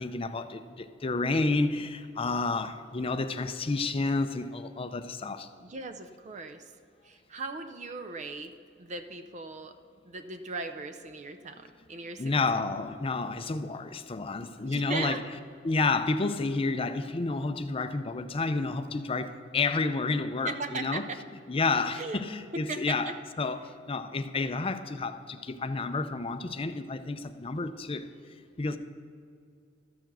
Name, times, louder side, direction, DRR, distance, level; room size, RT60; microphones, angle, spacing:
voice 1, 0.0-5.5 12.2-15.2 15.6-21.0 21.5-23.1 23.4-28.1 28.6-28.8, left 3 dB, 30° left, 9 dB, 0.5 m, -30 dB
voice 2, 5.6-6.7 7.0-8.5 8.8-9.8 10.1-12.4 14.6-15.2 20.4-21.2 22.0-22.2 22.5-23.1, right 3 dB, 40° right, 8 dB, 0.5 m, -38 dB
12.5 x 6.9 x 6.1 m, 2.3 s
head